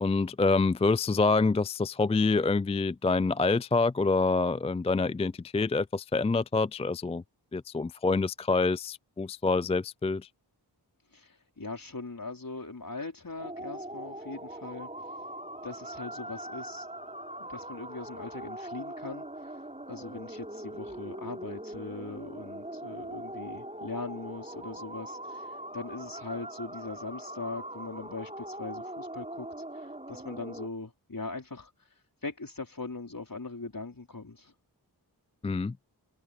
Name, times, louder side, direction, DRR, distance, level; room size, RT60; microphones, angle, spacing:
voice 1, 0.0-7.2 7.5-10.3 35.4-35.7, left 3 dB, 15° left, 0.3 m, -26 dB
voice 2, 11.1-14.9 15.6-16.9 17.4-19.3 19.9-25.5 25.7-29.5 29.7-31.7 32.2-34.5, left 3 dB, 50° left, 4.8 m, -40 dB
sound 1, 13.4-30.7, right 1 dB, 15° right, 4.8 m, -41 dB
cardioid pair, 45°, 43 cm